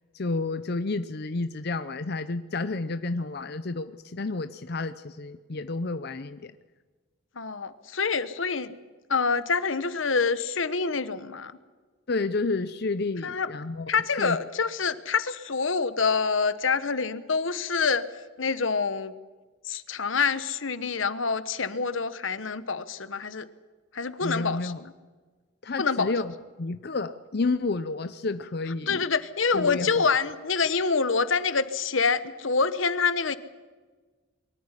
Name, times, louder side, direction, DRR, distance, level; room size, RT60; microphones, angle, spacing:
voice 1, 0.1-6.5 12.1-13.9 14.2-14.4 24.2-24.8 25.6-29.0 29.5-30.0, left 3 dB, 55° left, 11 dB, 0.7 m, -30 dB
voice 2, 7.4-8.7 9.1-11.5 13.2-13.5 13.9-18.0 18.4-19.1 19.6-23.5 23.9-24.9 25.8-26.1 28.9-33.4, left 5 dB, 80° left, 13 dB, 1.2 m, -26 dB
23.5 x 14.0 x 9.8 m, 1.4 s
head